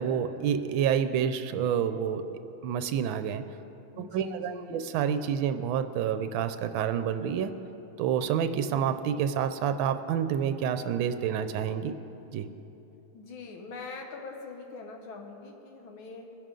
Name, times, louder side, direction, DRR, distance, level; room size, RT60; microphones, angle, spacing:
voice 1, 0.0-2.2 2.6-3.4 4.0-7.5 8.0-11.9 12.3-12.5, right 8 dB, 75° right, 10 dB, 1.4 m, -28 dB
voice 2, 3.9-4.8 13.1-16.4, left 4 dB, 75° left, 2 dB, 1.8 m, -43 dB
20.5 x 10.5 x 3.8 m, 3.0 s
omnidirectional pair, 2.3 m